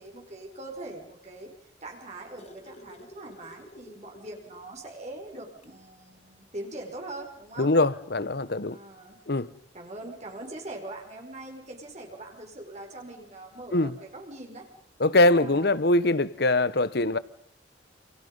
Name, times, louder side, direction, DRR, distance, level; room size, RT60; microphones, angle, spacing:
voice 1, 0.0-1.5 1.8-7.7 8.6-9.3 9.7-14.7 15.2-15.8, right 2 dB, 40° right, 5.5 m, -42 dB
sound 1, 1.8-4.7 5.1-5.2 5.6-5.8 6.9-7.0, left 1 dB, 35° left, 2.4 m, -51 dB
voice 2, 7.6-8.8 9.3-9.5 13.7-14.0 15.0-17.2, left 2 dB, 60° left, 1.0 m, -23 dB
29.0 x 29.0 x 5.5 m
head